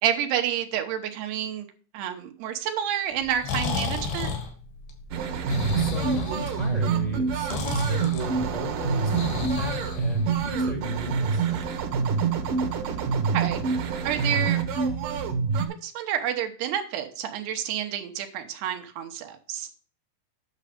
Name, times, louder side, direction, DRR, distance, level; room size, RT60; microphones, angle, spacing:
voice 1, 0.0-1.7 1.9-4.3 12.9-13.6 14.0-14.6 15.6-19.7, right 9 dB, 80° right, 5 dB, 3.1 m, -29 dB
Breathing, 3.2-10.6, left 4 dB, 70° left, 3.8 m, -33 dB
sound 1, 5.1-15.7, right 5 dB, 65° right, 2.4 m, -26 dB
voice 2, 5.8-11.4, right 1 dB, 20° right, 2 dB, 1.0 m, -35 dB
9.7 x 6.4 x 5.0 m, 0.41 s
omnidirectional pair, 4.8 m